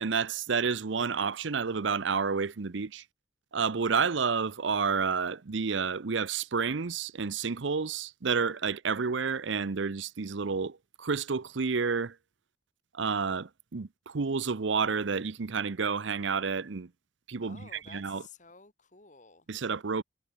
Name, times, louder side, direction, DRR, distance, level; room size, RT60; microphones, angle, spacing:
voice 1, 0.0-3.0 3.5-12.2 12.9-16.9 17.3-18.2 19.5-20.0, right 5 dB, 75° right, 0.7 m, -30 dB
voice 2, 17.4-19.5, left 4 dB, 40° left, 2.4 m, -53 dB
head